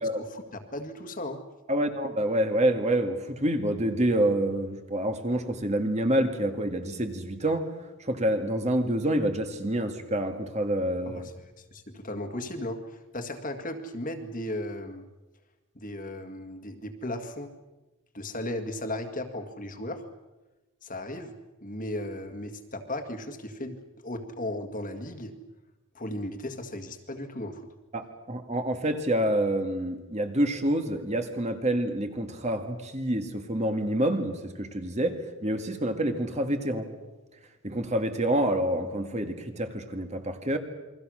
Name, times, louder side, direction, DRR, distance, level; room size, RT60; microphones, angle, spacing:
voice 1, 0.1-1.4 11.1-15.1 15.8-17.5 18.1-20.0 20.8-25.3 25.9-27.6, left 1 dB, 35° left, 6 dB, 2.0 m, -36 dB
voice 2, 1.7-7.7 8.0-11.3 27.9-36.9 37.6-40.6, right 1 dB, 30° right, 5 dB, 2.0 m, -27 dB
28.5 x 23.0 x 6.4 m, 1.1 s
head